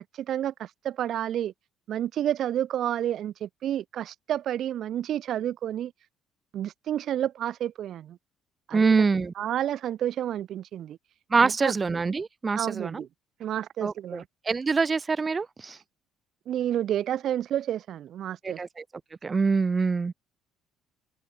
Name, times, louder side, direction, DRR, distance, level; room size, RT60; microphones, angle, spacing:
voice 1, 0.0-1.5 1.9-5.9 6.5-8.2 8.7-9.1 9.4-11.0 11.4-11.7 12.5-13.1 13.4-14.3 16.5-18.6, right 11 dB, 60° right, 2.7 m, -30 dB
voice 2, 8.7-9.3 11.3-13.0 13.8-15.8 18.4-18.8 19.2-20.1, right 4 dB, 30° right, 1.4 m, -25 dB
supercardioid pair, 85°, 0 cm